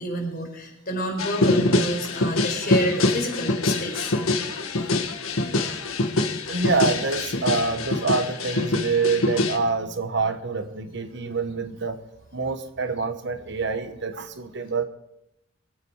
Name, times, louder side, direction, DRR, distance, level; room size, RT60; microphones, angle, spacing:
voice 1, 0.0-4.1, equal, 45° left, 1 dB, 4.5 m, -29 dB
sound 1, 1.2-9.6, left 2 dB, 90° left, 1.4 m, -24 dB
voice 2, 6.5-12.0 12.3-14.8, right 4 dB, 55° right, 9 dB, 1.1 m, -26 dB
23.5 x 8.6 x 4.8 m, 0.79 s
head